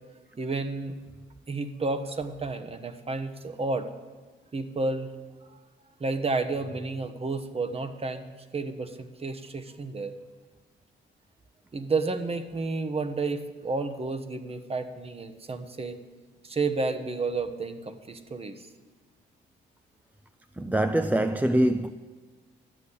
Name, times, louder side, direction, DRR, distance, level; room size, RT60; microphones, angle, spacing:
voice 1, 0.4-1.0 1.5-3.9 4.5-5.1 5.5-5.6 6.0-8.2 8.5-10.1 11.7-16.0 16.4-18.6, right 3 dB, 30° right, 1.1 m, -31 dB
voice 2, 20.6-21.9, right 1 dB, 10° right, 0.4 m, -24 dB
12.5 x 8.4 x 8.3 m
cardioid pair, 90°, 20 cm